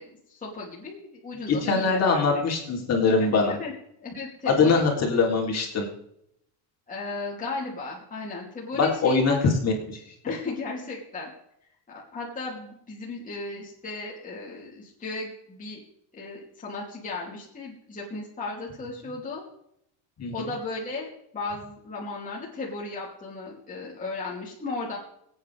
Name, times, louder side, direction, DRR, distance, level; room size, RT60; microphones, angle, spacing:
voice 1, 0.0-2.4 3.2-3.7 4.0-4.9 6.9-9.4 10.2-11.3 11.9-15.8 16.1-19.4 20.3-25.0, left 3 dB, 20° left, -5 dB, 3.0 m, -35 dB
voice 2, 1.5-3.6 4.6-5.9 8.8-9.7 20.2-20.5, left 4 dB, 35° left, 0 dB, 3.6 m, -22 dB
23.5 x 8.8 x 3.5 m, 0.73 s
cardioid pair, 140°, 43 cm